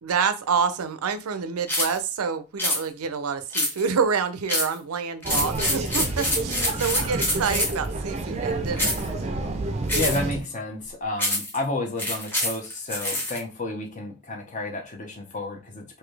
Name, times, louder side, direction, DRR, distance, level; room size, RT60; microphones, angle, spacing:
voice 1, 0.0-9.1, right 6 dB, 75° right, 11 dB, 0.5 m, -27 dB
sound 1, 1.7-2.0 2.6-2.8 3.5-4.0 4.5-4.8 5.2-7.8 8.8-9.1 9.9-10.3 11.2-11.6 12.0-13.4, left 1 dB, 10° left, 1.1 m, -26 dB
sound 2, 5.2-10.4, right 2 dB, 30° right, 0.5 m, -29 dB
voice 2, 9.9-16.0, left 2 dB, 35° left, 2 dB, 0.8 m, -31 dB
3.9 x 2.7 x 3.2 m, 0.29 s
head